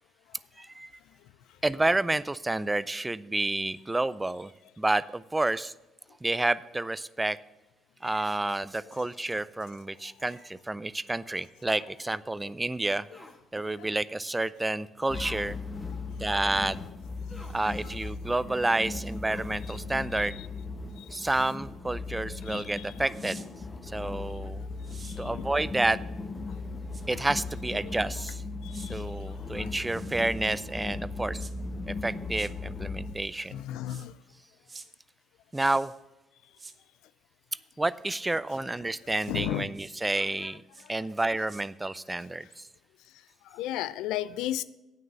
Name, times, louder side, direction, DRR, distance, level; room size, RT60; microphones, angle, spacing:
voice 1, 0.6-0.9 1.6-4.5 4.8-5.7 6.2-7.4 8.0-13.1 13.5-15.6 16.2-16.8 17.5-20.4 21.1-23.4 23.8-24.6 25.2-26.0 27.1-28.4 28.9-31.4 31.9-33.6 35.5-35.9 37.8-40.6 40.9-42.7, right 2 dB, 15° right, 18 dB, 0.4 m, -29 dB
sound 1, 13.1-13.4 15.2-15.5 17.3-17.6 19.2-19.6 21.2-21.6 23.0-23.3, left 1 dB, 10° left, 1.7 m, -48 dB
sound 2, 15.1-33.1, left 3 dB, 30° left, 1.2 m, -37 dB
sound 3, 23.1-23.5 24.8-25.2 26.9-27.0 28.7-28.9 29.8-30.4 31.4-31.5 32.3-32.5 33.8-34.1 34.7-34.9 35.5-36.0 36.6-36.8 39.1-39.3 39.7-39.9 40.7-40.9 41.2-41.6, right 4 dB, 30° right, 0.9 m, -49 dB
voice 2, 28.6-28.9 29.6-29.7 33.5-34.1 39.3-39.7 43.5-44.6, left 13 dB, 75° left, 16 dB, 0.3 m, -33 dB
8.8 x 6.4 x 7.6 m, 1.0 s
hypercardioid pair, 55°, 0 cm